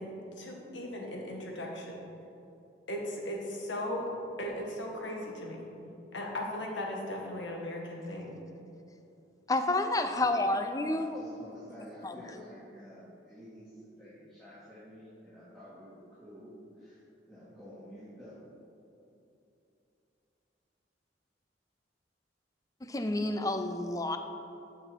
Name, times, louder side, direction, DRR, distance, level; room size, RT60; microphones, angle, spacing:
voice 1, 0.0-2.1 2.9-4.1 4.4-5.7 6.1-8.4, left 1 dB, 85° left, 0 dB, 1.7 m, -37 dB
voice 2, 9.5-11.2 12.0-12.2 22.8-24.2, left 2 dB, 20° left, 7 dB, 0.5 m, -29 dB
voice 3, 10.9-18.5, equal, ahead, -13 dB, 2.0 m, -50 dB
13.0 x 6.0 x 4.5 m, 2.8 s
head